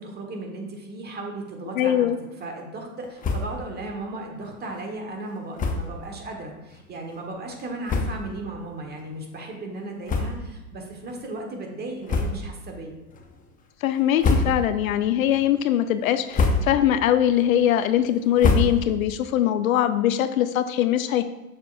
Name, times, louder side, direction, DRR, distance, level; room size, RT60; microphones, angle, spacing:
voice 1, 0.0-2.1 2.4-13.0, right 2 dB, 20° right, 2 dB, 1.4 m, -36 dB
voice 2, 1.8-2.2 13.8-21.2, left 11 dB, 70° left, 11 dB, 0.5 m, -22 dB
sound 1, 3.2-3.7 4.0-4.1 4.4-4.5 5.5-6.0 6.7-6.8 7.5-7.6 7.8-8.4 8.9-9.1 10.0-10.7 11.0-11.2 12.0-12.6 13.1-13.5 14.0-14.9 15.3-15.7 16.1-17.0 17.3-19.2, left 3 dB, 20° left, 0.7 m, -26 dB
6.7 x 6.7 x 2.6 m, 1.1 s
hypercardioid pair, 95°, 44 cm